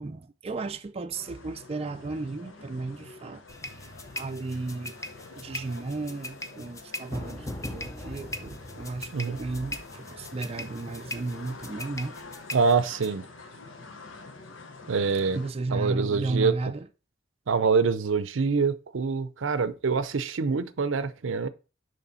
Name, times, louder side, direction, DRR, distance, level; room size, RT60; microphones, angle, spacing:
voice 1, 0.0-3.4 4.1-5.0 5.4-12.1 15.3-16.9, right 3 dB, 30° right, 0.4 m, -34 dB
sound 1, 1.1-15.5, left 3 dB, 85° left, 1.1 m, -47 dB
sound 2, 3.5-13.1, left 1 dB, 15° left, 0.6 m, -40 dB
voice 2, 12.5-13.2 14.9-15.4 15.7-16.5 17.5-21.5, right 5 dB, 80° right, 0.6 m, -25 dB
6.7 x 3.3 x 5.5 m
head